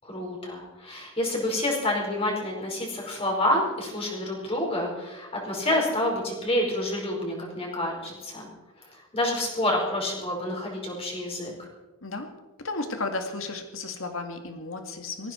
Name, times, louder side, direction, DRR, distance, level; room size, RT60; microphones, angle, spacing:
voice 1, 0.0-8.5 8.9-11.5, left 1 dB, 30° left, -1 dB, 5.0 m, -28 dB
voice 2, 12.6-15.3, left 3 dB, 70° left, 5 dB, 2.1 m, -33 dB
19.0 x 15.5 x 4.5 m, 1.1 s
head